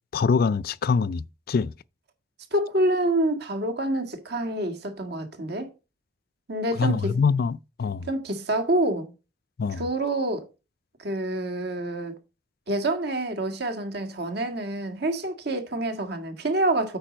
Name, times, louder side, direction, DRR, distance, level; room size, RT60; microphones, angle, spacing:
voice 1, 0.1-1.7 6.8-8.1 9.6-9.8, left 5 dB, 50° left, 0.4 m, -24 dB
voice 2, 2.5-5.7 6.5-7.2 8.1-9.1 9.8-10.5 11.0-12.2 12.7-17.0, right 1 dB, 60° right, 1.9 m, -27 dB
8.7 x 5.4 x 5.0 m
head